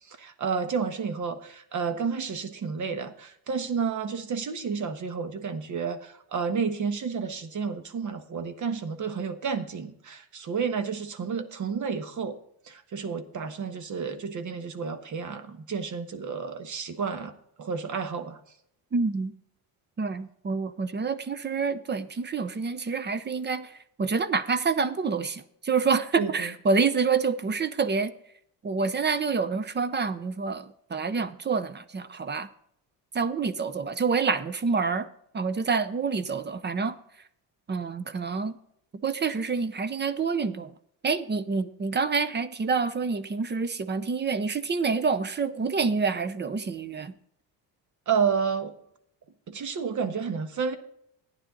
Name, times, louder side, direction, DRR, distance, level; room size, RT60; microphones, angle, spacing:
voice 1, 0.1-12.4 12.7-17.3 17.6-18.4 26.2-26.5 48.1-48.7 49.5-50.7, right 6 dB, 45° right, 10 dB, 1.4 m, -31 dB
voice 2, 18.9-19.3 20.0-23.7 24.0-28.1 28.6-32.5 33.1-35.1 35.3-37.0 37.7-38.6 39.0-40.7 41.0-47.1, right 5 dB, 25° right, 14 dB, 0.7 m, -27 dB
12.0 x 9.8 x 3.9 m, 0.71 s
cardioid pair, 100°, 41 cm